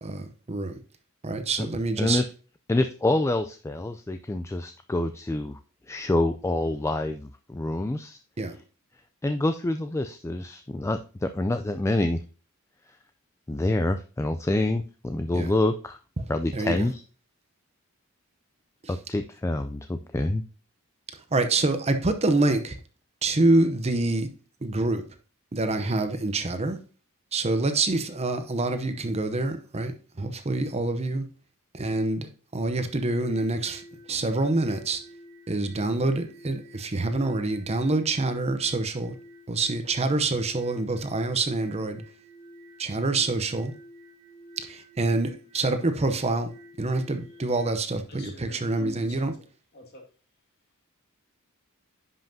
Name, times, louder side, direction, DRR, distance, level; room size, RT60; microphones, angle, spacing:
voice 1, 0.0-0.8 1.2-2.2 8.4-8.6 15.3-15.5 16.2-16.9 18.8-18.9 21.1-22.8 23.2-24.3 24.6-25.0 25.5-26.8 27.3-31.2 31.7-33.8 34.1-35.0 35.5-39.1 39.5-42.0 42.8-43.7 44.6-49.3, right 2 dB, 30° right, 0.7 m, -26 dB
voice 2, 2.7-5.6 5.9-8.2 9.2-12.2 13.5-16.0 16.3-17.0 18.9-20.4, left 2 dB, 15° left, 0.3 m, -27 dB
sound 1, 32.8-47.7, right 1 dB, 65° right, 1.6 m, -50 dB
voice 3, 48.1-49.3 49.7-50.0, equal, 50° left, 2.0 m, -44 dB
10.5 x 5.6 x 2.7 m
head